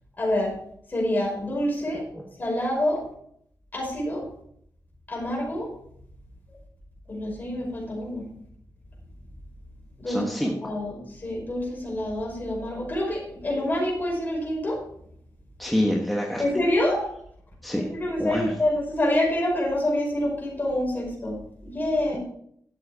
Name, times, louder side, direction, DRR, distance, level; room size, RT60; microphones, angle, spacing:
voice 1, 0.2-0.6 0.9-2.0 2.4-3.0 3.7-4.3 5.1-5.7 7.1-8.3 10.0-10.2 10.6-14.8 16.4-17.0 17.8-21.4 21.6-22.2, left 1 dB, 30° left, -2 dB, 5.6 m, -27 dB
voice 2, 10.1-10.7 15.6-16.6 17.6-17.9 18.2-18.6, equal, ahead, -1 dB, 1.3 m, -26 dB
12.0 x 7.8 x 4.9 m, 0.67 s
wide cardioid pair, 150°, 6 cm